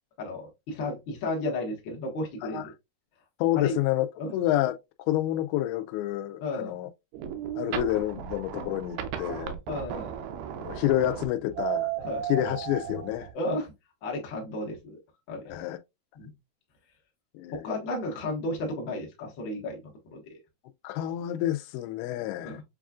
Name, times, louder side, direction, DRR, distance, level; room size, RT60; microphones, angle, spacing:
voice 1, 0.2-2.7 3.5-3.8 4.2-4.3 6.4-6.7 9.7-10.2 12.0-12.2 13.3-13.7 14.0-15.0 15.3-15.6 16.1-16.3 17.5-20.2 22.4-22.6, left 2 dB, 70° left, 1.1 m, -33 dB
voice 2, 3.4-4.1 4.3-4.8 5.1-6.9 7.6-9.5 10.6-13.3 15.5-15.8 17.3-17.7 20.8-22.6, left 13 dB, 90° left, 2.5 m, -28 dB
sound 1, 7.1-13.3, right 10 dB, 85° right, 2.6 m, -35 dB
7.2 x 2.4 x 2.3 m
omnidirectional pair, 4.4 m